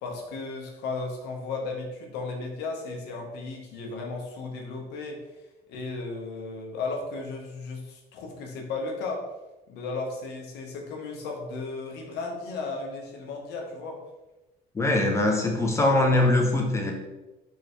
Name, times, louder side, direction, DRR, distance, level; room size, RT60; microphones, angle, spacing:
voice 1, 0.0-5.2 5.7-9.2 9.7-14.0, left 3 dB, 85° left, 1 dB, 0.9 m, -35 dB
voice 2, 14.7-16.9, left 2 dB, 15° left, 1 dB, 0.8 m, -22 dB
3.7 x 3.2 x 3.0 m, 1.0 s
cardioid pair, 110°, 17 cm